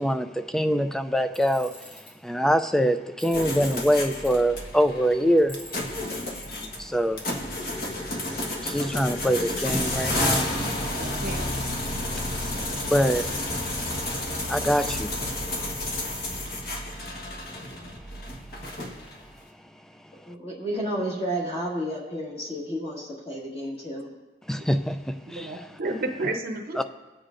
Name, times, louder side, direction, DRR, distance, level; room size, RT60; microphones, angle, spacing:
voice 1, 0.0-5.6 5.9-6.0 6.6-7.3 8.4-10.5 12.8-13.3 14.5-15.1 24.5-25.6 26.8-26.9, equal, 5° left, 9 dB, 0.4 m, -24 dB
Tools, 1.3-2.1 3.2-4.3 5.5-6.6, left 1 dB, 80° left, 3.7 m, -44 dB
sound 1, 3.3-19.3, left 1 dB, 55° left, 1.3 m, -31 dB
voice 2, 11.0-11.5 24.6-24.7 25.3-26.8, right 2 dB, 55° right, 4 dB, 0.8 m, -31 dB
voice 3, 20.3-24.1, right 1 dB, 35° left, -5 dB, 1.8 m, -31 dB
19.0 x 8.2 x 2.5 m, 1.1 s
head